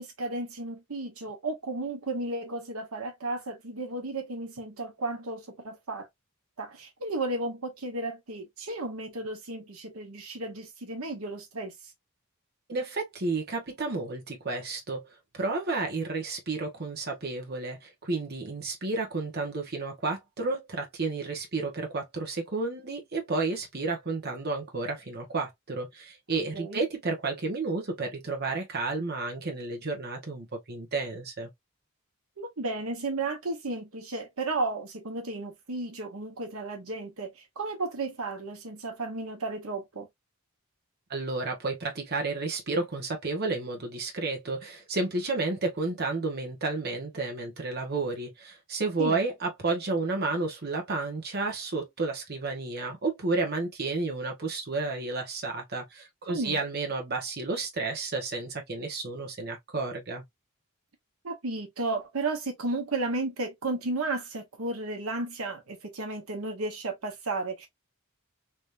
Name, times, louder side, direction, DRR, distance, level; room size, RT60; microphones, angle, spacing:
voice 1, 0.0-6.1 6.6-11.7 21.2-21.3 26.5-26.8 32.4-40.1 49.0-49.2 56.3-56.6 61.2-67.7, right 2 dB, 80° right, 1.1 m, -33 dB
voice 2, 12.7-15.0 15.3-31.5 41.1-60.2, right 3 dB, 50° right, 1.1 m, -31 dB
3.4 x 3.0 x 2.5 m
head